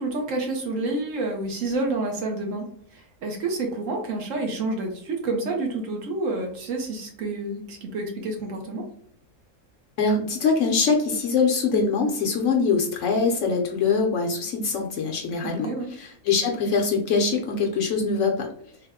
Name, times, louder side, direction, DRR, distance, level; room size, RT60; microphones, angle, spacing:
voice 1, 0.0-2.7 2.9-8.8 15.4-15.9, right 2 dB, 65° right, 2 dB, 1.0 m, -29 dB
voice 2, 10.0-15.7 16.0-18.5, left 4 dB, 65° left, 2 dB, 0.9 m, -23 dB
3.4 x 2.1 x 3.5 m, 0.63 s
omnidirectional pair, 1.6 m